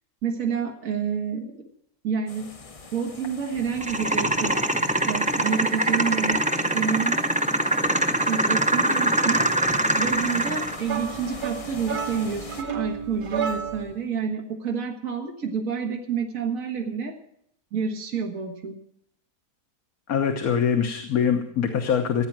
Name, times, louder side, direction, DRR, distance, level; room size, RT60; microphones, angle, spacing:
voice 1, 0.2-1.7 2.0-2.5 2.9-6.4 6.7-7.2 8.3-9.5 10.0-17.2 17.7-18.8, right 6 dB, 60° right, 1 dB, 2.0 m, -29 dB
sound 1, 2.3-12.6, left 4 dB, 30° left, 0.7 m, -41 dB
sound 2, 3.8-10.8, right 1 dB, 10° right, 0.4 m, -23 dB
sound 3, 10.9-14.0, right 7 dB, 85° right, 1.9 m, -31 dB
voice 2, 20.1-22.3, left 7 dB, 70° left, 5 dB, 1.6 m, -23 dB
16.0 x 9.4 x 7.4 m, 0.74 s
omnidirectional pair, 1.6 m